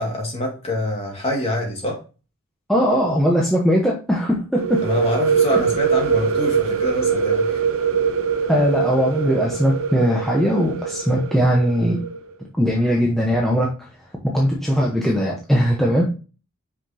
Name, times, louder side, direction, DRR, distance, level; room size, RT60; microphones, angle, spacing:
voice 1, 0.0-2.0 4.8-7.6, left 1 dB, 25° left, 0 dB, 2.1 m, -25 dB
voice 2, 2.7-4.8 8.5-12.0 12.6-13.7 14.3-16.1, equal, ahead, -3 dB, 0.9 m, -19 dB
sound 1, 4.6-12.2, right 6 dB, 70° right, 0.7 m, -22 dB
5.9 x 5.8 x 2.8 m, 0.33 s
head